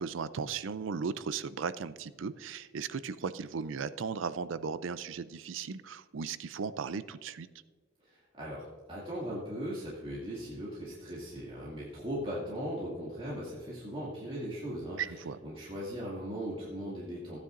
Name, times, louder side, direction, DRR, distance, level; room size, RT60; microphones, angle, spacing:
voice 1, 0.0-7.5 15.0-15.4, right 5 dB, 80° right, 14 dB, 0.5 m, -36 dB
voice 2, 8.0-8.6 8.9-15.0 15.4-17.4, equal, 30° right, -7 dB, 2.3 m, -38 dB
15.5 x 9.6 x 2.5 m, 1.5 s
head